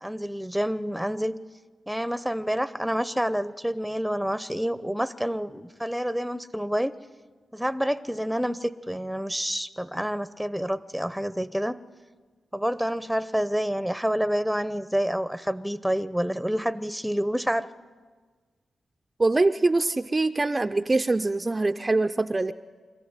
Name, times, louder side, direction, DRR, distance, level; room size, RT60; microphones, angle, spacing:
voice 1, 0.0-1.3 1.9-6.9 7.5-11.8 12.5-17.7, equal, ahead, 14 dB, 0.8 m, -28 dB
voice 2, 19.2-22.5, right 2 dB, 30° right, 8 dB, 0.6 m, -23 dB
25.5 x 14.0 x 9.7 m, 1.5 s
cardioid pair, 65°, 0 cm